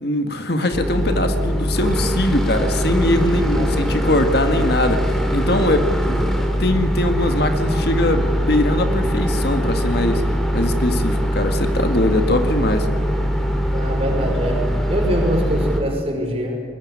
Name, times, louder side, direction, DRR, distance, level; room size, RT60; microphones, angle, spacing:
voice 1, 0.0-6.2 6.6-10.2 10.5-12.9, left 1 dB, 55° left, 7 dB, 1.8 m, -21 dB
sound 1, 0.7-15.8, equal, ahead, 2.9 m, -21 dB
voice 2, 3.5-4.0 13.7-16.6, equal, 30° right, 2 dB, 5.4 m, -24 dB
22.5 x 21.0 x 9.8 m, 2.1 s
head